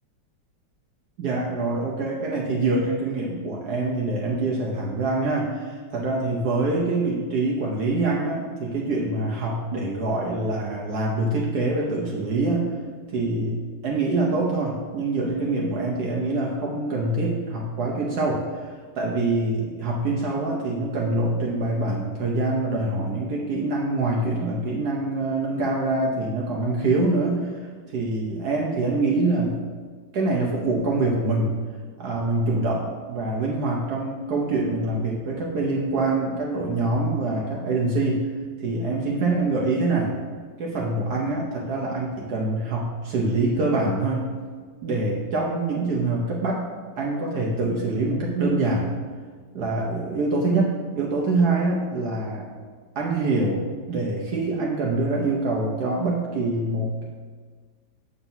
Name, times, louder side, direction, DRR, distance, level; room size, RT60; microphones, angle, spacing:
voice 1, 1.2-12.7 13.1-18.7 18.9-27.5 27.9-29.6 30.1-31.5 32.0-38.3 38.6-40.1 40.6-44.3 44.8-46.6 47.0-48.9 49.5-52.5 52.9-57.0, right 2 dB, 65° right, -3 dB, 1.3 m, -25 dB
7.2 x 6.9 x 2.7 m, 1.5 s
omnidirectional pair, 1.9 m